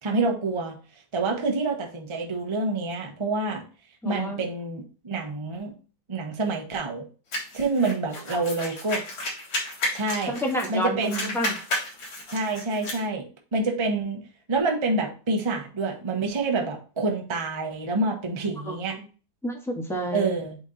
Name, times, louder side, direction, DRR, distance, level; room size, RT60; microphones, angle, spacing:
voice 1, 0.0-0.8 1.1-3.6 4.0-5.7 6.1-7.1 7.5-9.0 9.9-10.4 10.7-11.3 12.3-13.3 13.5-14.2 14.5-19.0 20.1-20.6, right 3 dB, 25° right, 2 dB, 0.6 m, -27 dB
voice 2, 4.0-4.4 8.3-8.4 10.3-11.6 18.6-19.0 19.4-20.3, equal, ahead, 0 dB, 0.9 m, -29 dB
sound 1, 7.3-10.7 11.0-13.0, left 1 dB, 85° left, 2.8 m, -32 dB
8.0 x 3.0 x 3.9 m, 0.37 s
omnidirectional pair, 2.1 m